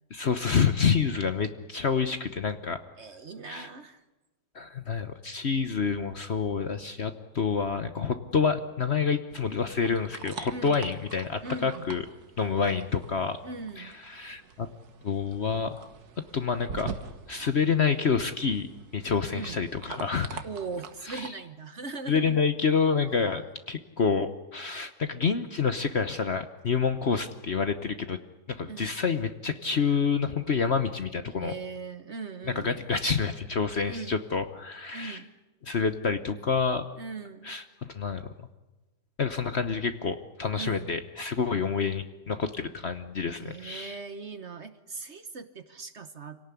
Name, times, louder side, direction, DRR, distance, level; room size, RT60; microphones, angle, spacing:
voice 1, 0.1-2.8 3.5-3.7 4.5-12.0 12.4-13.4 13.8-14.7 15.0-15.8 16.3-16.9 17.3-18.7 18.9-20.4 21.0-21.3 22.1-28.2 28.5-31.5 32.5-35.2 35.6-36.8 37.4-37.6 37.9-38.2 39.2-44.0, left 5 dB, 45° left, 9 dB, 1.0 m, -28 dB
voice 2, 3.0-4.0 10.5-10.8 11.4-11.9 13.4-13.9 19.3-19.6 20.4-22.4 28.7-28.9 31.3-32.8 33.9-34.2 34.9-35.3 37.0-37.5 40.6-40.9 43.4-46.4, right 4 dB, 45° right, 10 dB, 1.2 m, -39 dB
sound 1, 9.3-21.3, right 6 dB, 60° right, 1.8 m, -45 dB
26.5 x 18.0 x 9.8 m, 1.1 s
omnidirectional pair, 1.9 m